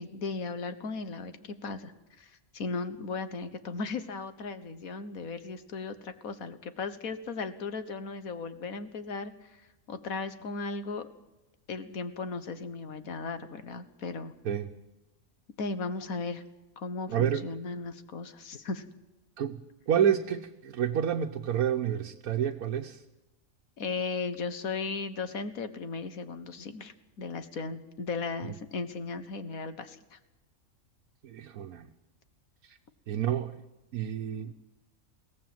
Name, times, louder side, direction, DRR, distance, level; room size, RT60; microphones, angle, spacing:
voice 1, 0.0-1.9 2.2-9.6 9.9-11.1 11.7-14.3 15.6-16.4 16.8-18.8 23.8-30.2, left 4 dB, 75° left, 11 dB, 1.8 m, -36 dB
voice 2, 17.1-17.5 19.4-19.6 19.9-23.0 28.4-28.5 31.2-31.9 32.6-32.8 33.1-33.6 33.9-34.5, right 9 dB, 85° right, 3 dB, 1.4 m, -29 dB
22.0 x 17.0 x 7.8 m, 1.0 s
omnidirectional pair, 1.5 m